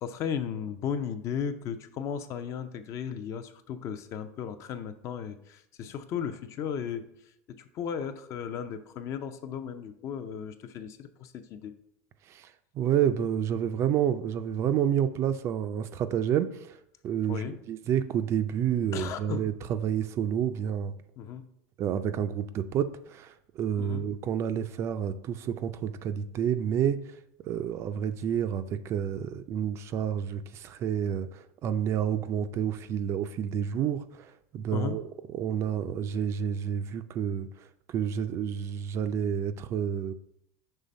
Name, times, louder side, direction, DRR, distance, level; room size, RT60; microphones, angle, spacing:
voice 1, 0.0-7.0 7.5-11.7 17.3-17.6 18.9-19.5 21.2-21.5 23.8-24.1 34.7-35.0, left 7 dB, 40° left, 10 dB, 0.4 m, -35 dB
voice 2, 12.3-16.8 17.0-20.9 21.8-27.2 27.4-40.1, right 9 dB, 35° right, 11 dB, 0.3 m, -29 dB
5.6 x 3.3 x 5.1 m, 0.76 s
supercardioid pair, 135°, 8 cm